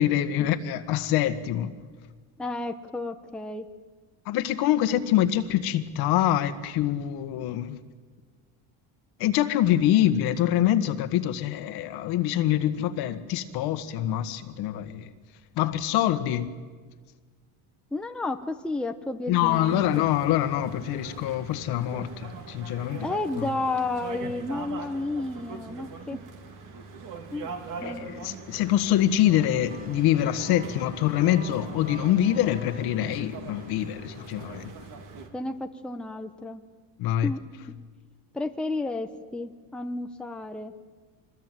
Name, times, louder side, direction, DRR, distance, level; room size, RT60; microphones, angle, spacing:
voice 1, 0.0-1.7 4.2-7.8 9.2-15.1 15.5-16.5 19.3-23.1 27.8-34.7 37.0-37.3, left 12 dB, 60° left, 1.7 m, -25 dB
voice 2, 2.4-3.7 17.9-20.0 23.0-26.2 27.3-28.3 35.3-36.6 37.2-37.4 38.3-40.7, left 2 dB, ahead, 0.9 m, -32 dB
sound 1, 19.4-35.3, right 4 dB, 45° right, 3.0 m, -42 dB
sound 2, 29.7-35.1, equal, 20° right, 3.1 m, -45 dB
25.5 x 20.5 x 9.3 m
cardioid pair, 145°, 43 cm